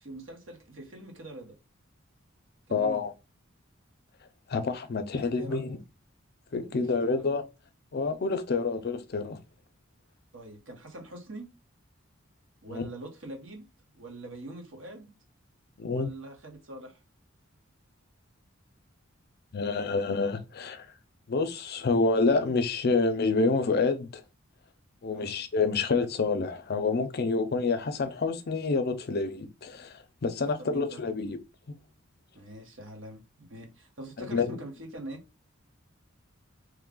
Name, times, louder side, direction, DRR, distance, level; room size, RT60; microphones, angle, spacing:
voice 1, 0.0-1.5 2.7-3.1 5.1-5.6 6.6-6.7 7.0-7.3 10.3-11.5 12.6-13.6 13.9-15.1 15.9-17.0 25.1-25.3 30.6-31.0 32.3-35.2, right 1 dB, 70° right, 1.2 m, -44 dB
voice 2, 2.7-3.1 4.5-5.8 6.5-7.4 7.9-9.4 12.7-12.9 15.8-16.1 19.5-20.9 21.3-24.2 25.0-31.4 34.3-34.6, left 4 dB, 50° left, 0.5 m, -28 dB
3.1 x 2.3 x 3.7 m
head